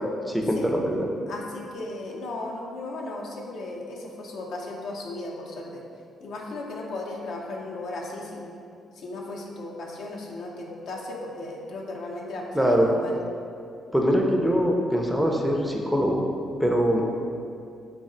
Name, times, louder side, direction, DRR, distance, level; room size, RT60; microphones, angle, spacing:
voice 1, 0.3-1.1 12.5-12.9 13.9-16.2 16.6-17.0, equal, ahead, 0 dB, 0.4 m, -23 dB
voice 2, 1.3-5.8 6.2-8.5 8.9-13.1, left 2 dB, 75° left, -1 dB, 0.5 m, -36 dB
3.7 x 2.0 x 3.7 m, 2.4 s
cardioid pair, 90°, 0 cm